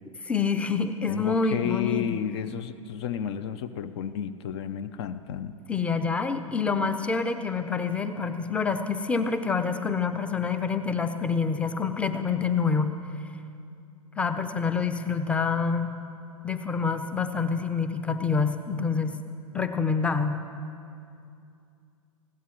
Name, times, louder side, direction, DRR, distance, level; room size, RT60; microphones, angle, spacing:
voice 1, 0.2-2.2 5.7-12.9 14.2-15.9 16.4-19.2 19.5-20.4, left 5 dB, 5° left, 9 dB, 0.7 m, -27 dB
voice 2, 1.1-5.6, left 9 dB, 50° left, 13 dB, 0.6 m, -32 dB
20.5 x 16.0 x 3.1 m, 2.5 s
figure-of-eight pair, 100°, 18 cm